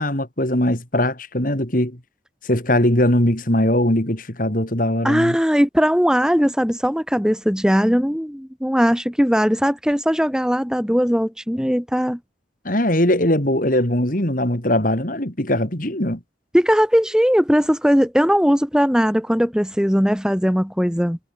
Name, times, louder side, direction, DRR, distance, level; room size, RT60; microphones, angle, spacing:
voice 1, 0.0-2.0 2.4-5.4 12.6-16.2, left 1 dB, 45° left, 4.1 m, -20 dB
voice 2, 5.0-12.2 16.5-21.2, equal, 5° right, 2.8 m, -19 dB
head